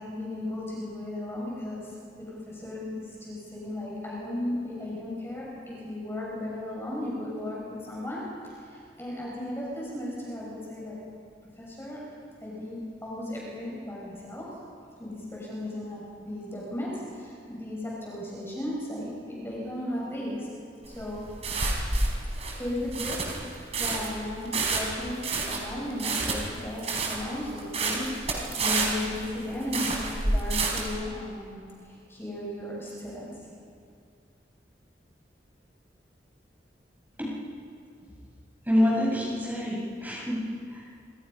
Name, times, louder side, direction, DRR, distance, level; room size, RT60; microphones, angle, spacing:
voice 1, 0.0-8.2 8.6-11.0 11.6-12.0 12.4-14.5 15.0-20.5 20.9-21.3 22.5-25.2 25.5-33.3, left 1 dB, 15° left, -5 dB, 6.6 m, -35 dB
sound 1, 20.8-31.0, right 3 dB, 35° right, 4.4 m, -29 dB
voice 2, 38.7-40.4 40.7-40.8, left 1 dB, 10° right, -5 dB, 7.2 m, -26 dB
27.5 x 26.5 x 5.6 m, 2.3 s
head